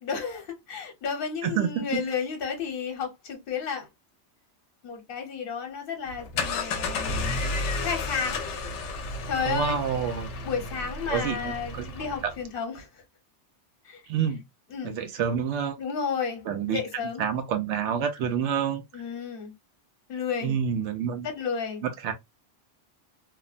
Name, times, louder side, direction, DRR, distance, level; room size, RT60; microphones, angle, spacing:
voice 1, 0.0-3.9 4.8-7.4 7.8-8.4 9.3-9.8 10.4-13.0 13.8-14.0 14.7-14.9 15.8-16.4 16.7-17.3 18.9-19.5 20.1-20.5 21.2-21.8, left 6 dB, 55° left, 1.0 m, -32 dB
voice 2, 1.4-2.0 9.4-10.3 11.1-11.9 12.2-12.3 14.1-14.4 14.8-15.8 16.5-16.8 17.2-18.8 20.4-21.3 21.8-22.1, right 7 dB, 80° right, 0.9 m, -28 dB
sound 1, 6.1-12.4, left 3 dB, 85° left, 0.9 m, -32 dB
2.9 x 2.0 x 2.4 m
omnidirectional pair, 1.2 m